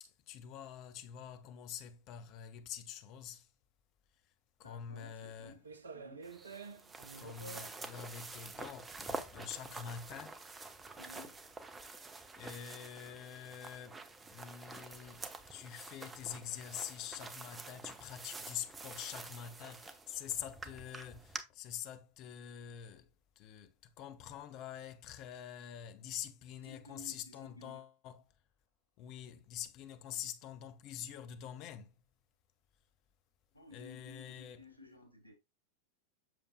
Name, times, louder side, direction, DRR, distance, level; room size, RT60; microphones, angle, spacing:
voice 1, 0.0-3.5 4.6-5.5 7.2-10.4 12.4-23.1 23.4-28.2 29.0-31.9 33.7-34.6, left 9 dB, 40° left, 0.8 m, -46 dB
voice 2, 4.6-5.6 5.9-6.3 11.0-11.4 26.6-27.8 33.5-35.3, left 2 dB, 90° right, 2.2 m, -54 dB
sound 1, 5.4-11.7, right 4 dB, 70° right, 0.7 m, -52 dB
sound 2, 6.2-21.4, right 3 dB, 15° right, 0.8 m, -48 dB
7.6 x 6.7 x 2.2 m
figure-of-eight pair, 90°, 0 cm